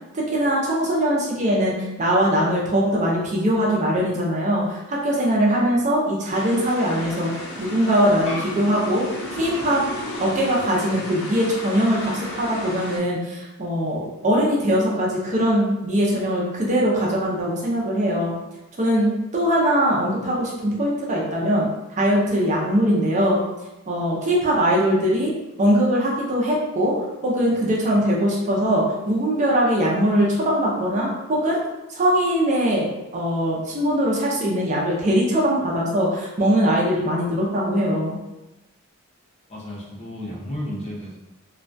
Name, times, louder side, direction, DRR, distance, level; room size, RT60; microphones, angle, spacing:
voice 1, 0.1-9.8 10.2-18.4 18.8-21.7 22.0-23.4 23.9-25.3 25.6-31.6 31.9-38.2, equal, 35° right, -3 dB, 0.4 m, -21 dB
sound 1, 6.3-13.0, left 2 dB, 85° left, 0.7 m, -34 dB
voice 2, 39.5-41.1, left 1 dB, 30° left, -4 dB, 0.5 m, -32 dB
2.3 x 2.1 x 2.5 m, 1.0 s
head